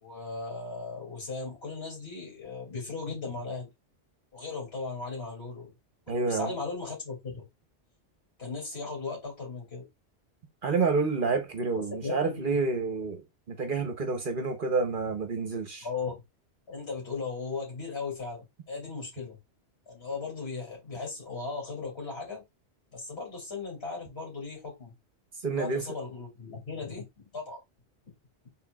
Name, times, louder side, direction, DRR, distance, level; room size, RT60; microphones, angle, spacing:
voice 1, 0.0-3.7 4.3-5.7 6.1-7.4 8.4-9.8 12.0-12.6 15.8-16.2 16.7-19.4 19.9-22.4 22.9-24.9 25.5-27.0 27.3-27.6, left 4 dB, 60° left, 2.7 m, -37 dB
voice 2, 6.1-6.5 10.6-13.2 13.5-15.9 25.4-25.8, right 4 dB, 50° right, 0.9 m, -28 dB
4.3 x 3.9 x 2.3 m
omnidirectional pair, 1.2 m